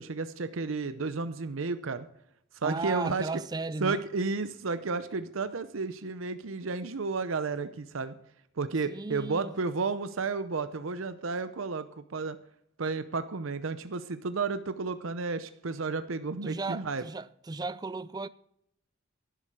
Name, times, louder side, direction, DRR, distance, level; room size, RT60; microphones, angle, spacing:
voice 1, 0.0-2.1 2.6-3.4 3.8-8.2 8.6-12.4 12.8-17.0, right 4 dB, 85° right, 0.7 m, -32 dB
voice 2, 2.6-4.0 8.9-9.6 16.4-18.3, right 3 dB, 20° right, 0.4 m, -35 dB
11.5 x 11.0 x 4.8 m
head